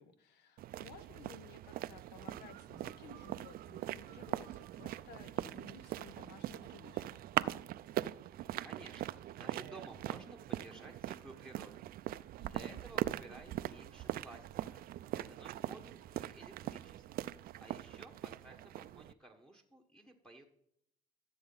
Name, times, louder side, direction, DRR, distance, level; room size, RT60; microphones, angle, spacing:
voice 1, 0.0-7.3 12.4-12.8, left 6 dB, 80° left, 11 dB, 1.1 m, -56 dB
sound 1, 0.6-19.1, right 14 dB, 60° right, 0.4 m, -41 dB
voice 2, 8.6-14.8 15.1-17.3 17.6-20.4, right 2 dB, 5° left, 2 dB, 1.2 m, -55 dB
14.0 x 7.0 x 3.9 m, 0.73 s
cardioid pair, 110°, 17 cm